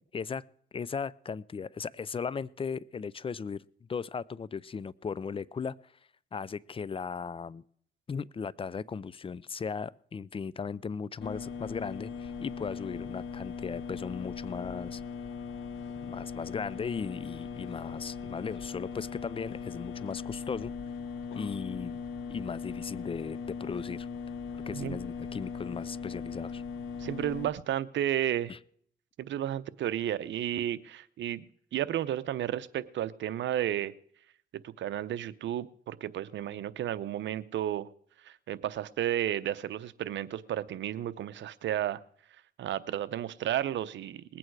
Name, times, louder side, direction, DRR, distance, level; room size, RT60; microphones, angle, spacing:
voice 1, 0.1-0.4 0.7-5.8 6.3-7.6 8.1-15.0 16.0-20.7 21.4-22.0 22.3-24.1 24.7-26.6 28.5-28.6, left 5 dB, 25° left, 21 dB, 0.4 m, -37 dB
sound 1, 11.2-27.5, left 6 dB, 80° left, 1.5 m, -39 dB
voice 2, 27.0-28.5 29.2-33.9 34.6-37.9 38.2-42.0 42.6-44.4, right 11 dB, 70° right, 15 dB, 0.8 m, -32 dB
20.0 x 8.8 x 4.7 m, 0.63 s
cardioid pair, 90°, 20 cm